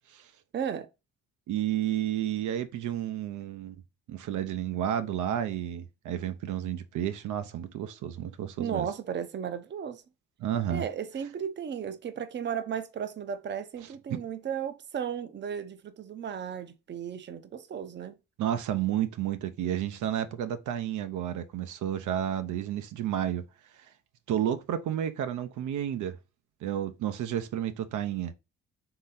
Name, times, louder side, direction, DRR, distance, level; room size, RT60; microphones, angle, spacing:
voice 1, 0.5-0.9 8.6-10.0 10.7-18.2, right 8 dB, 35° right, 0.6 m, -35 dB
voice 2, 1.5-3.8 4.1-8.9 10.4-10.8 14.1-14.2 18.4-23.4 24.3-26.2 26.6-28.3, right 10 dB, 75° right, 0.6 m, -31 dB
3.9 x 3.2 x 3.9 m
cardioid pair, 90°, 30 cm